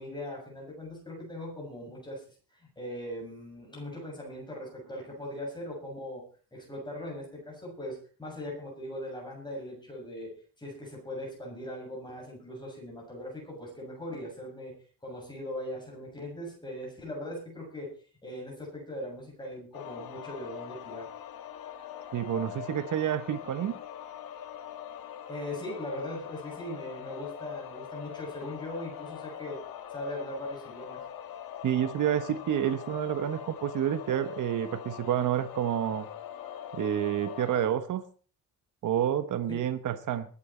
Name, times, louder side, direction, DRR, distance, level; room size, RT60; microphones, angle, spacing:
voice 1, 0.0-2.2 2.6-6.2 6.5-14.7 15.0-17.9 18.2-21.1 25.3-29.6 29.9-31.0 39.5-39.6, left 1 dB, 15° left, -2 dB, 6.8 m, -40 dB
sound 1, 19.7-37.7, left 10 dB, 85° left, 1.5 m, -42 dB
voice 2, 22.1-23.8 31.6-36.1 36.7-38.0 38.8-40.3, right 10 dB, 60° right, 10 dB, 1.1 m, -29 dB
21.5 x 8.8 x 4.3 m, 0.40 s
wide cardioid pair, 180°, 34 cm